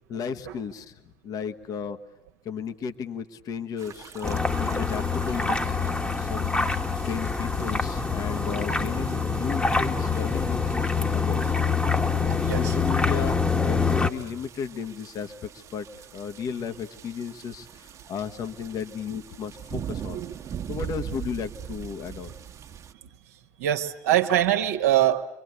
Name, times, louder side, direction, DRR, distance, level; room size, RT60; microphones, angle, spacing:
voice 1, 0.1-2.0 2.4-11.5 12.2-20.2 20.7-22.4, left 7 dB, 45° left, 9 dB, 1.5 m, -34 dB
sound 1, 3.8-22.9, right 8 dB, 40° right, 1.4 m, -42 dB
sound 2, 4.2-14.1, left 4 dB, 15° left, 1.5 m, -25 dB
voice 2, 23.6-25.2, right 12 dB, 70° right, 4 dB, 1.4 m, -23 dB
27.5 x 24.5 x 8.1 m, 0.87 s
figure-of-eight pair, 60°, 8 cm